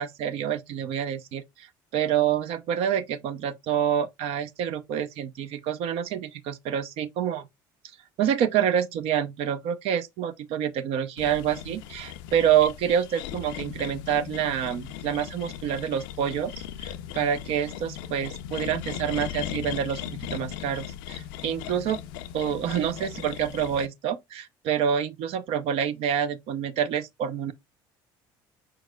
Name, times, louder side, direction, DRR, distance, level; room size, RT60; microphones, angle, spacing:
voice 1, 0.0-1.7 1.9-7.5 8.2-16.5 16.8-22.0 22.3-27.5, right 9 dB, 65° right, 0.5 m, -27 dB
sound 1, 11.2-23.9, left 11 dB, 85° left, 0.4 m, -38 dB
5.0 x 4.6 x 2.2 m
supercardioid pair, 75°, 11 cm